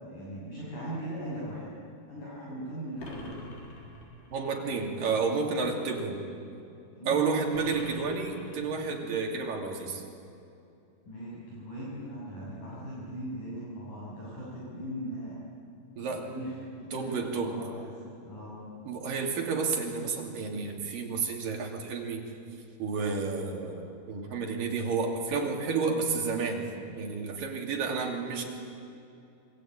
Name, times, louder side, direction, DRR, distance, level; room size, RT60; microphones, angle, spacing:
voice 1, 0.0-1.6 2.1-3.3 6.9-7.2 11.1-15.4 16.1-17.9 18.2-18.7, right 1 dB, 45° left, -8 dB, 8.4 m, -39 dB
sound 1, 3.0-4.5 7.5-9.0, left 2 dB, 70° left, 5.9 m, -45 dB
voice 2, 4.3-6.2 7.1-10.0 16.0-16.3 16.9-17.5 18.8-22.2 22.8-26.7 27.0-28.4, right 4 dB, 55° right, 1 dB, 4.2 m, -31 dB
27.5 x 23.5 x 9.1 m, 2.6 s
omnidirectional pair, 5.1 m